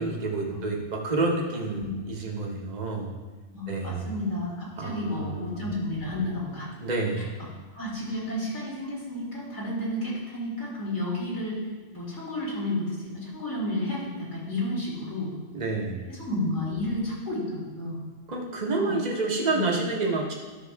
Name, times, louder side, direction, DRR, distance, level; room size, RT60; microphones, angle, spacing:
voice 1, 0.0-3.1 3.7-4.1 4.8-5.6 6.8-7.2 15.5-16.0 18.3-20.3, right 3 dB, 35° right, 0 dB, 1.2 m, -29 dB
voice 2, 3.5-6.7 7.2-7.3 7.7-11.6 11.9-15.3 16.1-18.0 18.7-18.9 19.5-19.8, left 1 dB, 65° left, -5 dB, 2.7 m, -31 dB
12.0 x 6.1 x 3.5 m, 1.3 s
omnidirectional pair, 1.3 m